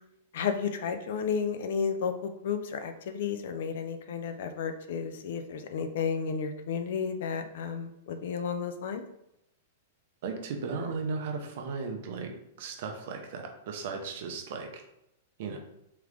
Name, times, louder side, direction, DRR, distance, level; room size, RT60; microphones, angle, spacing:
voice 1, 0.3-9.0, left 6 dB, 55° left, 8 dB, 0.4 m, -32 dB
voice 2, 10.2-12.3 12.6-14.8 15.4-15.6, right 4 dB, 45° right, 3 dB, 0.7 m, -36 dB
3.7 x 3.3 x 3.3 m, 0.81 s
supercardioid pair, 175°, 0 cm